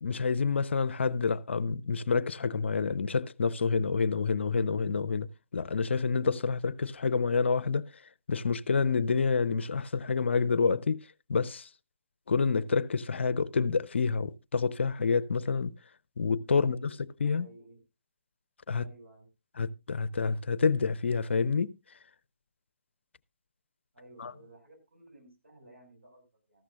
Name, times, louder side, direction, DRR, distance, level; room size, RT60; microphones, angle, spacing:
voice 1, 0.0-7.8 8.3-11.0 11.3-11.7 12.3-15.7 16.2-16.9 17.2-17.5 18.7-18.8 19.6-21.7 24.2-24.3, left 5 dB, 65° left, 0.6 m, -28 dB
voice 2, 16.4-17.8 18.8-19.3 23.9-26.6, right 1 dB, 80° right, 5.5 m, -55 dB
14.0 x 12.5 x 2.4 m
figure-of-eight pair, 135°, 7 cm